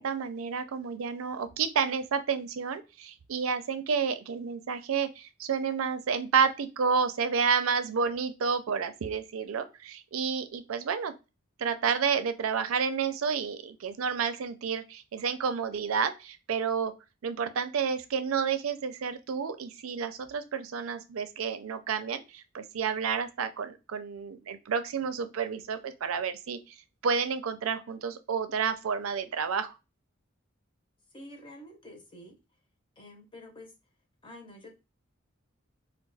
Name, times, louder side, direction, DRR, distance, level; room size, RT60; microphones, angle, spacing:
voice 1, 0.0-11.1 11.6-16.9 17.2-26.6 27.0-29.7, right 6 dB, 85° right, 10 dB, 0.4 m, -30 dB
voice 2, 31.1-32.3 33.0-33.7 34.2-34.7, left 1 dB, 25° left, 2 dB, 0.7 m, -48 dB
2.3 x 2.3 x 3.9 m, 0.28 s
head